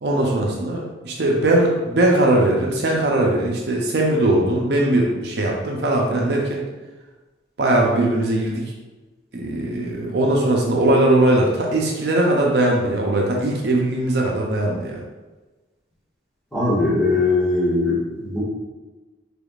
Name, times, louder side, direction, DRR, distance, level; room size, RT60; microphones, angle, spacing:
voice 1, 0.0-6.6 7.6-8.6 9.3-15.0, right 1 dB, 65° right, -1 dB, 0.5 m, -20 dB
voice 2, 16.5-18.4, left 2 dB, ahead, -11 dB, 1.4 m, -20 dB
4.2 x 3.4 x 2.3 m, 1.2 s
head